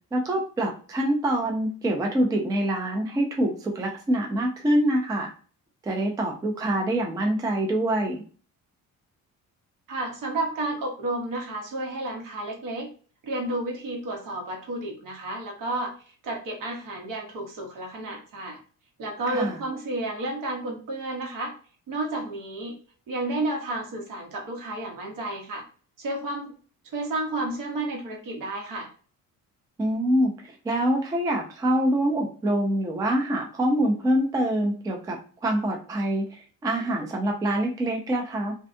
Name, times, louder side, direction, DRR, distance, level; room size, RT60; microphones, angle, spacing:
voice 1, 0.1-5.3 5.8-8.2 19.3-19.6 29.8-35.2 35.4-38.5, right 1 dB, 10° right, 2 dB, 0.3 m, -25 dB
voice 2, 9.9-12.9 13.2-16.0 16.2-18.6 19.0-21.6 21.9-22.8 23.1-25.6 26.0-26.5 26.9-28.9, right 2 dB, 70° right, 1 dB, 1.0 m, -31 dB
2.6 x 2.2 x 2.5 m, 0.41 s
cardioid pair, 150°, 35 cm